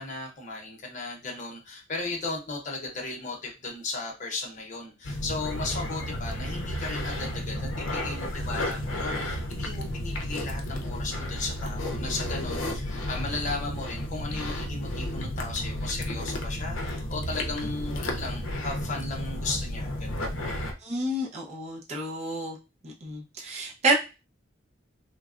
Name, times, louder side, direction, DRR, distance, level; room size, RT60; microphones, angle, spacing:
voice 1, 0.0-20.4, left 3 dB, 40° left, 0.8 m, -36 dB
sound 1, 5.0-20.7, left 1 dB, 85° left, 0.6 m, -32 dB
voice 2, 20.8-22.6 22.8-23.9, right 2 dB, 35° right, 0.6 m, -29 dB
3.2 x 2.2 x 2.4 m
head